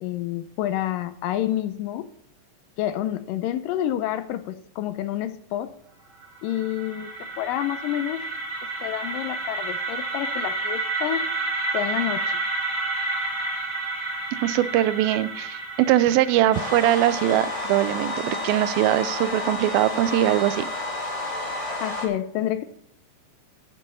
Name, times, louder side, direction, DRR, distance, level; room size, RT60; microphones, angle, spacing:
voice 1, 0.0-2.1 2.8-5.7 6.4-7.1 7.4-8.3 8.8-11.3 11.7-12.4 21.8-22.6, left 12 dB, 80° left, 12 dB, 2.2 m, -28 dB
sound 1, 6.2-18.2, right 3 dB, 75° right, 0.7 m, -30 dB
voice 2, 14.3-20.6, right 13 dB, 90° right, 15 dB, 2.4 m, -22 dB
sound 2, 16.5-22.1, left 2 dB, 15° left, 1.0 m, -30 dB
9.8 x 7.7 x 5.5 m, 0.67 s
omnidirectional pair, 4.1 m